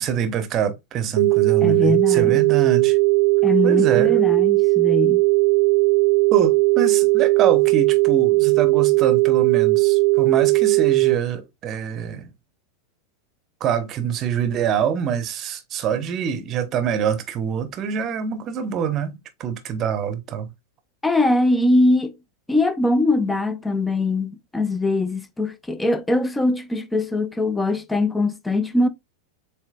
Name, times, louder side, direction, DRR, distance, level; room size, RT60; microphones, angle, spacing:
voice 1, 0.0-3.0 3.6-4.2 6.3-12.3 13.6-20.5, right 8 dB, 30° right, 0.8 m, -25 dB
sound 1, 1.2-11.2, right 26 dB, 55° right, 0.4 m, -17 dB
voice 2, 1.6-2.4 3.4-5.2 21.0-22.1 22.5-28.9, left 2 dB, 10° left, 0.6 m, -21 dB
7.2 x 2.9 x 2.3 m
figure-of-eight pair, 90°, 0 cm